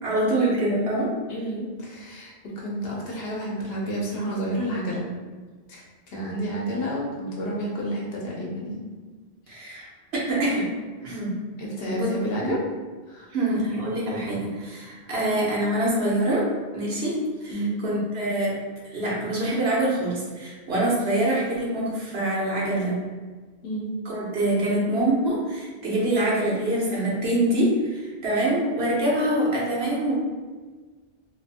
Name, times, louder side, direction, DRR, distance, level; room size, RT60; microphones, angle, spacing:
voice 1, 0.0-1.1 9.5-9.9 10.3-10.7 11.0-11.3 11.9-12.1 12.4-12.5 13.3-18.6 18.9-23.0 24.1-30.2, right 1 dB, 70° right, -5 dB, 1.0 m, -25 dB
voice 2, 1.3-5.1 5.7-5.8 6.1-8.9 11.0-11.2 11.6-12.6 13.1-13.3 17.5-17.8 23.6-23.9, equal, 70° left, -3 dB, 0.9 m, -30 dB
2.7 x 2.4 x 2.7 m, 1.4 s
omnidirectional pair, 1.1 m